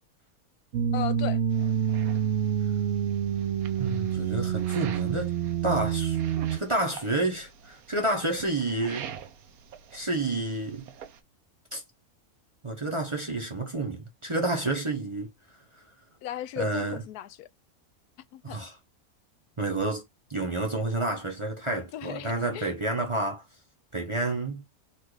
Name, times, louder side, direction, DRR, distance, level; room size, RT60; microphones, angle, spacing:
sound 1, 0.7-6.6, right 9 dB, 60° right, 0.8 m, -27 dB
voice 1, 0.9-1.4 16.2-17.5 18.3-18.6 21.9-22.9, left 13 dB, 90° left, 1.1 m, -37 dB
sound 2, 1.5-11.2, right 8 dB, 80° right, 1.2 m, -47 dB
voice 2, 3.8-5.3 5.6-6.2 6.5-9.1 9.9-10.9 11.7-11.8 12.6-15.3 16.6-17.0 18.4-18.7 19.6-20.0 20.3-23.4 23.9-24.6, right 2 dB, 25° right, 0.7 m, -29 dB
4.3 x 2.6 x 4.7 m
omnidirectional pair, 1.6 m